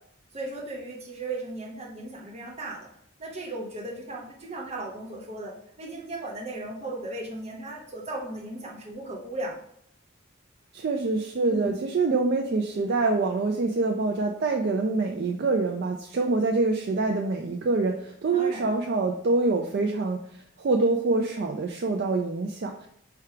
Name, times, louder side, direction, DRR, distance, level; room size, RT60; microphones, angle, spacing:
voice 1, 0.3-2.9 3.2-9.6 11.5-11.7 18.3-18.7, right 2 dB, 30° right, -2 dB, 1.0 m, -36 dB
voice 2, 10.7-22.9, right 3 dB, 50° right, 2 dB, 0.4 m, -25 dB
4.4 x 2.3 x 4.8 m, 0.69 s
head